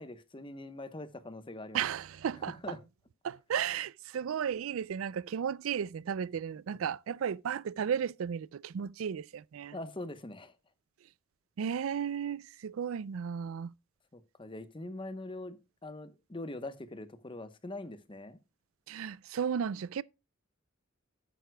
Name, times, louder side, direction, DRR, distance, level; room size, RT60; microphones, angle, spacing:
voice 1, 0.0-1.8 2.5-2.8 9.7-10.5 14.1-18.4, left 2 dB, 25° left, 0.9 m, -43 dB
voice 2, 1.7-2.8 3.2-9.8 11.6-13.7 18.9-20.0, right 8 dB, 75° right, 0.4 m, -34 dB
12.5 x 9.3 x 2.2 m
head